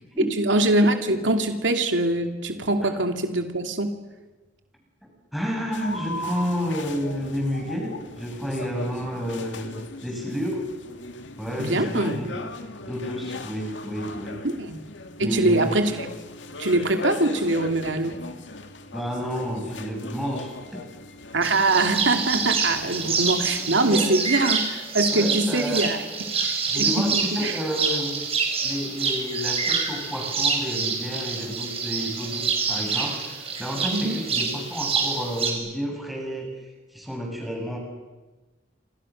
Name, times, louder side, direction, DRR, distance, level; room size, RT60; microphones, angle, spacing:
voice 1, 0.4-3.9 11.6-12.3 14.4-14.8 15.2-16.1 16.6-18.2 21.3-26.0 26.4-27.5 33.9-34.2, right 2 dB, 85° right, 5 dB, 2.6 m, -23 dB
voice 2, 5.0-10.7 11.4-12.5 12.8-14.4 15.2-15.7 18.9-20.8 23.8-24.1 25.1-26.0 26.3-28.2 28.6-37.8, equal, ahead, -1 dB, 7.9 m, -30 dB
sound 1, 5.7-23.7, left 2 dB, 80° left, 2.3 m, -38 dB
sound 2, 21.4-35.5, right 5 dB, 30° right, 5.4 m, -27 dB
28.0 x 27.5 x 6.5 m, 1.2 s
head